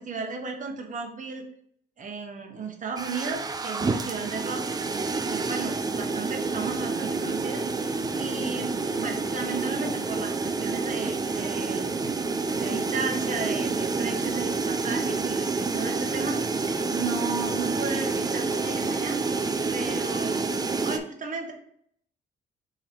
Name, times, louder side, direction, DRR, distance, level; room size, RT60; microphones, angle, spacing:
voice 1, 0.0-1.4 2.0-4.6 5.3-7.6 8.1-11.9 12.5-16.4 16.9-19.2 19.7-20.5 20.8-21.5, right 4 dB, 40° right, 2 dB, 1.0 m, -34 dB
sound 1, 3.0-21.0, right 3 dB, 20° right, 0.4 m, -28 dB
3.9 x 2.9 x 4.3 m, 0.67 s
cardioid pair, 90°, 20 cm